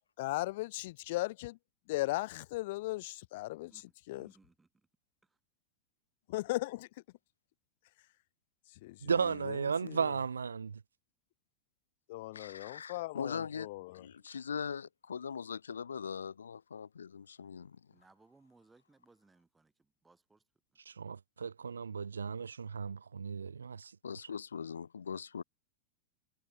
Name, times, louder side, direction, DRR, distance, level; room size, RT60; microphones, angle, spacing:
voice 1, 0.2-1.6 1.9-3.7 4.1-4.3 6.3-6.9 8.8-9.0 9.4-10.1 12.1-14.0, left 19 dB, 50° left, 0.5 m, -37 dB
voice 2, 3.7-4.9 5.2-5.4 17.9-20.4 20.7-20.8, right 3 dB, 10° right, 6.7 m, -66 dB
voice 3, 9.0-10.8 20.9-23.9, right 6 dB, 70° right, 1.1 m, -35 dB
voice 4, 12.3-13.7 13.9-17.8 24.0-25.4, left 6 dB, 70° left, 1.9 m, -41 dB
figure-of-eight pair, 90°, 0 cm